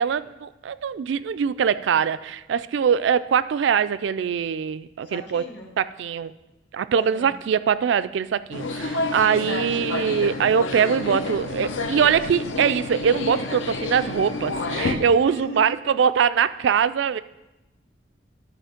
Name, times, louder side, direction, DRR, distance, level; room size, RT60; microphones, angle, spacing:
voice 1, 0.0-5.4 5.8-6.3 6.7-17.2, right 7 dB, 70° right, 15 dB, 0.3 m, -22 dB
voice 2, 5.0-5.7 6.9-7.4 9.3-10.6 15.2-16.0, left 1 dB, 60° left, 4 dB, 1.2 m, -40 dB
sound 1, 8.5-14.9, left 3 dB, 85° left, 0.8 m, -29 dB
11.5 x 4.4 x 5.0 m, 0.97 s
head